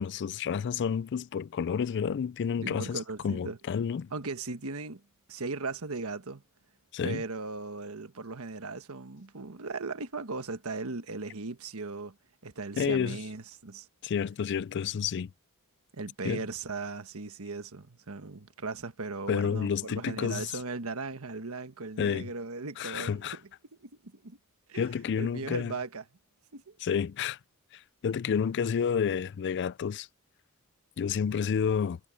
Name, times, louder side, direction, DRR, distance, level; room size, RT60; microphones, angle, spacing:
voice 1, 0.0-4.1 6.9-7.2 12.8-13.2 14.0-15.3 16.2-16.4 19.3-20.5 22.0-22.3 22.8-23.4 24.7-25.7 26.8-27.4 27.7-30.1 31.0-32.0, left 7 dB, 55° left, 0.4 m, -30 dB
voice 2, 2.6-3.6 4.1-5.0 5.3-6.4 7.0-12.2 12.4-13.9 15.9-23.4 23.8-24.4 24.7-24.8 25.2-26.0 26.5-26.7, right 3 dB, 70° right, 1.4 m, -38 dB
head